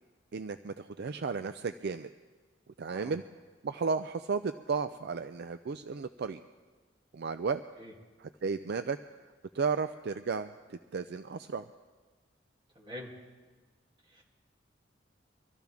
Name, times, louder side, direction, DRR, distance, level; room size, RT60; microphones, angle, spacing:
voice 1, 0.3-2.1 2.8-3.2 3.6-6.4 7.1-7.6 8.2-9.0 9.5-11.7, right 5 dB, 60° right, 10 dB, 0.4 m, -34 dB
voice 2, 12.7-13.1 14.1-14.2, left 1 dB, 25° right, -3 dB, 2.8 m, -45 dB
24.5 x 14.0 x 3.5 m, 1.4 s
head